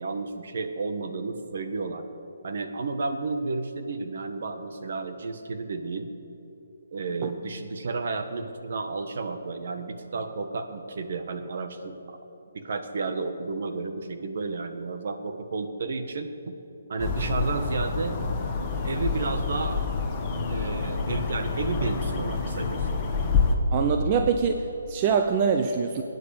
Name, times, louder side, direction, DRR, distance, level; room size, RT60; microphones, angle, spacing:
voice 1, 0.0-2.1 2.4-6.1 6.9-12.2 12.5-16.6 16.9-18.2 18.8-19.8 20.5-23.0, right 3 dB, 55° right, 7 dB, 1.5 m, -32 dB
sound 1, 17.0-23.6, left 4 dB, 20° left, 1.4 m, -28 dB
voice 2, 23.7-26.0, right 6 dB, 25° right, 5 dB, 0.7 m, -24 dB
20.0 x 9.7 x 6.8 m, 2.9 s
hypercardioid pair, 165°, 0 cm